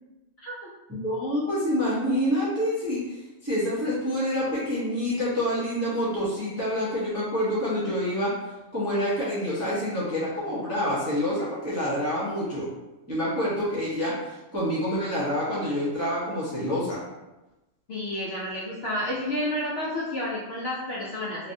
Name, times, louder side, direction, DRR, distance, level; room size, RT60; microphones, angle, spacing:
voice 1, 0.4-0.7 17.9-21.5, left 1 dB, 60° left, -6 dB, 0.8 m, -30 dB
voice 2, 0.9-8.3 8.7-12.7 13.1-17.0, equal, 15° right, -10 dB, 0.7 m, -27 dB
3.2 x 2.6 x 2.6 m, 1.0 s
omnidirectional pair, 1.4 m